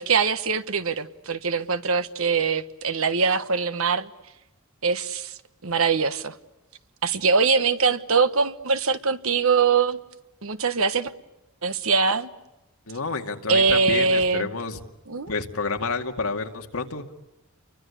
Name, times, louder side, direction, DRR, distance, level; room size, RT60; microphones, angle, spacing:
voice 1, 0.0-4.1 4.8-5.3 5.6-6.3 7.0-10.0 10.4-11.1 11.6-12.3 13.5-14.5 15.1-15.3, right 5 dB, 70° right, 1.3 m, -22 dB
voice 2, 12.9-14.8 15.3-17.3, left 4 dB, 75° left, 2.2 m, -29 dB
30.0 x 24.0 x 8.3 m
head